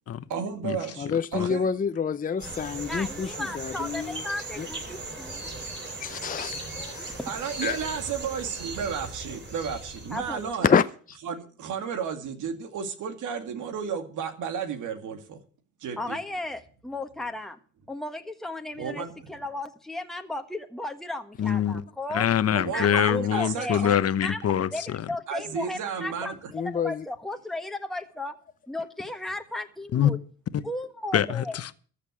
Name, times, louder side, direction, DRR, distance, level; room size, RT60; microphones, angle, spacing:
voice 1, 0.3-1.6 7.3-10.7 11.3-15.4 15.8-16.2 18.8-19.1 22.5-24.0 25.3-26.3, right 7 dB, 80° right, 2.2 m, -33 dB
voice 2, 1.0-4.2 4.6-4.7 6.0-7.2 7.6-7.8 10.6-11.2 26.5-27.0, left 6 dB, 30° left, 0.6 m, -27 dB
sound 1, 2.4-10.5, right 2 dB, 35° right, 6.3 m, -38 dB
voice 3, 2.9-5.5 7.2-7.3 10.1-10.4 16.0-17.6 17.9-22.2 22.7-23.8 24.2-24.4 24.7-28.4 28.7-30.2 30.6-31.5, left 2 dB, ahead, 1.4 m, -35 dB
voice 4, 21.4-21.8 22.1-25.0 29.9-30.1 30.5-30.6 31.1-31.7, left 9 dB, 55° left, 1.0 m, -24 dB
14.0 x 6.8 x 9.0 m
cardioid pair, 90°, 30 cm